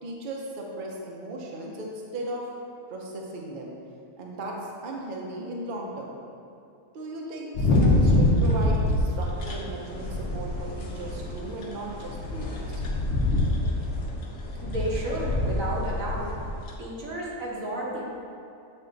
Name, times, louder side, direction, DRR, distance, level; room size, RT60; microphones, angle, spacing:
voice 1, 0.0-2.5 2.9-3.7 4.2-6.2 6.9-12.9, right 1 dB, 45° right, -2 dB, 0.8 m, -36 dB
sound 1, 7.5-16.8, left 1 dB, 65° left, 1.0 m, -26 dB
voice 2, 14.6-16.3 16.8-18.0, right 1 dB, 80° right, -4 dB, 1.5 m, -32 dB
7.8 x 3.6 x 3.9 m, 2.6 s
omnidirectional pair, 1.4 m